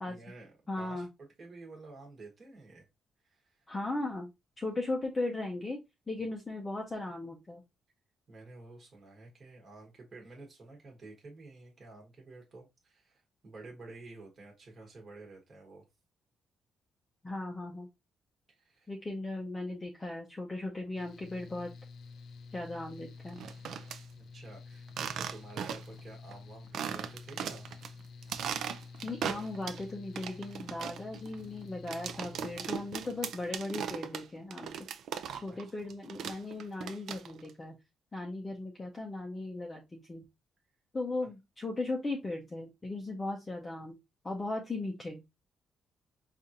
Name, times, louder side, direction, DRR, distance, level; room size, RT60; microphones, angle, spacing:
voice 1, 0.0-0.5 0.8-2.9 3.2-3.6 8.3-15.8 18.6-18.9 24.2-27.7 35.5-35.7 41.2-41.3, right 3 dB, 30° right, 1.1 m, -51 dB
voice 2, 0.7-1.1 3.7-4.3 4.6-5.8 6.1-7.6 17.2-17.9 18.9-21.7 22.5-23.4 29.0-34.8 35.4-37.8 38.1-40.2 40.9-44.0 44.2-45.2, left 2 dB, 15° left, 0.5 m, -37 dB
Mechanical fan, 20.9-33.5, left 4 dB, 65° left, 0.4 m, -50 dB
sound 1, 23.3-24.0 24.9-26.0 26.3-26.4 26.7-27.9 28.2-29.8 30.2-35.6 35.9-37.5, right 8 dB, 70° right, 0.4 m, -38 dB
5.1 x 2.4 x 2.7 m
cardioid pair, 165°, 0 cm